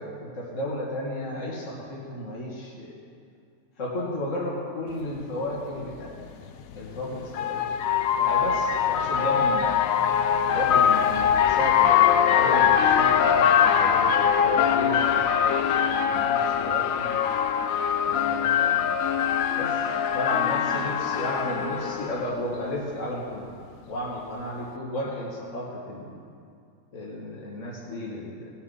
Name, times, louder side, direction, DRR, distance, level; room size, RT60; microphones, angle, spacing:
voice 1, 0.0-2.9 3.8-6.2 6.7-7.7 8.2-9.9 10.5-17.2 18.0-18.9 19.5-19.8 20.1-26.2 26.9-28.5, left 1 dB, 55° left, -5 dB, 2.2 m, -33 dB
sound 1, 5.2-5.3 6.7-22.3, left 8 dB, 70° left, 1.0 m, -22 dB
18.5 x 9.1 x 5.5 m, 2.3 s
omnidirectional pair, 1.5 m